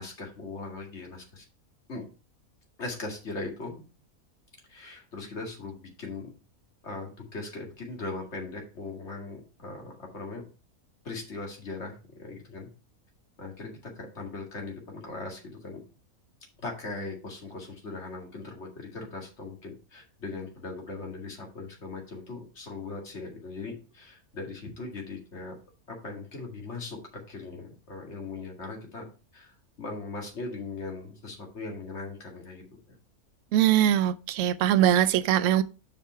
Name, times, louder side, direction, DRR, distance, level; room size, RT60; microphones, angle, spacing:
voice 1, 0.0-1.5 1.9-2.0 2.8-3.8 4.7-6.3 6.8-10.4 11.0-12.7 13.4-15.8 16.6-25.5 25.9-29.1 29.3-33.0, left 3 dB, 50° left, 2.3 m, -39 dB
voice 2, 33.5-35.6, right 11 dB, 65° right, 0.9 m, -22 dB
7.5 x 5.3 x 4.4 m
omnidirectional pair, 1.6 m